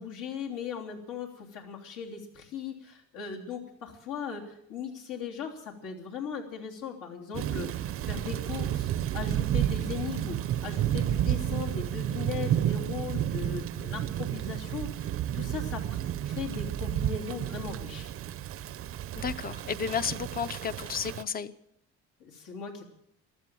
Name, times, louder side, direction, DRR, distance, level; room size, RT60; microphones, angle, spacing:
voice 1, 0.0-15.1 15.3-18.1 22.2-22.9, left 6 dB, 75° left, 0 dB, 3.3 m, -38 dB
Thunder / Rain, 7.3-21.2, right 11 dB, 45° right, 0.5 m, -31 dB
voice 2, 19.2-21.5, left 7 dB, 30° left, 15 dB, 0.6 m, -32 dB
14.5 x 13.0 x 7.6 m, 0.75 s
cardioid pair, 160°, 31 cm